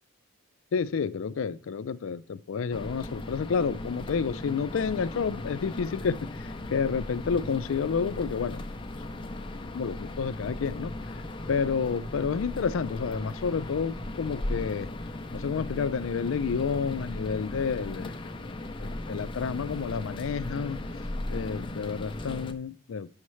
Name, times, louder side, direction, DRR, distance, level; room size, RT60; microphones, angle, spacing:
voice 1, 0.7-8.6 9.7-10.9 11.5-14.9 15.3-18.1 18.8-20.8 21.3-23.1, left 6 dB, 80° left, 0.4 m, -30 dB
sound 1, 2.7-22.5, left 1 dB, 25° left, 0.6 m, -37 dB
9.7 x 6.4 x 3.1 m
head